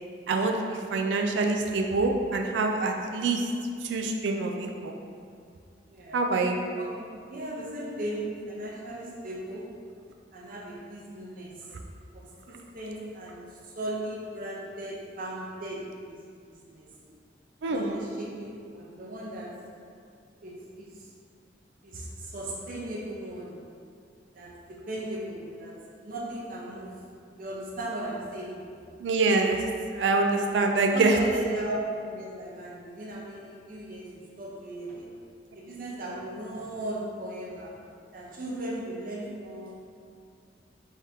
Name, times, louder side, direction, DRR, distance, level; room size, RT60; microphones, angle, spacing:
voice 1, 0.3-3.5 3.8-4.9 6.1-6.6 17.6-18.0 29.0-29.6 29.9-31.2, right 3 dB, 85° right, 3 dB, 0.4 m, -25 dB
voice 2, 5.9-6.3 6.8-9.7 10.3-11.5 12.1-15.8 16.1-16.2 16.5-16.9 17.7-19.5 20.4-21.0 21.8-23.5 24.3-27.0 27.4-28.6 30.4-30.6 30.9-35.1 35.5-37.7 38.1-39.8, right 1 dB, 50° right, -3 dB, 0.6 m, -37 dB
3.6 x 2.8 x 3.5 m, 2.3 s
head